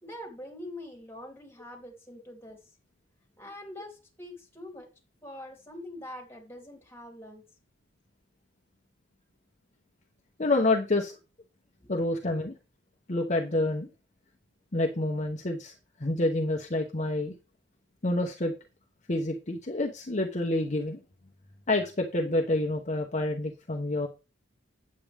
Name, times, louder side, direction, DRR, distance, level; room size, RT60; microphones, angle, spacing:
voice 1, 0.0-2.7 3.4-4.9 5.2-7.4 11.8-11.9, left 1 dB, 10° left, 2.8 m, -44 dB
voice 2, 10.4-11.2 11.9-12.5 13.1-13.9 14.7-15.7 16.0-17.3 18.0-18.5 19.1-21.0 21.7-24.1, left 2 dB, 35° left, 0.9 m, -28 dB
8.5 x 8.4 x 3.4 m
head